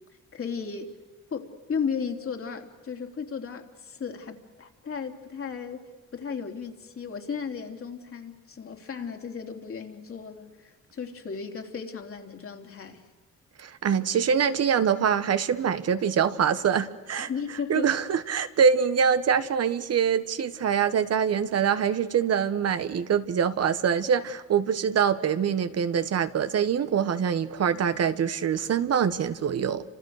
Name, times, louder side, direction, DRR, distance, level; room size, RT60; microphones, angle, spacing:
voice 1, 0.3-0.9 1.3-5.9 6.1-13.0 17.3-18.0, left 6 dB, 45° left, 3 dB, 3.3 m, -35 dB
voice 2, 13.6-17.3 17.7-29.8, right 7 dB, 55° right, 11 dB, 1.3 m, -24 dB
29.5 x 26.5 x 6.6 m, 1.3 s
cardioid pair, 90°, 30 cm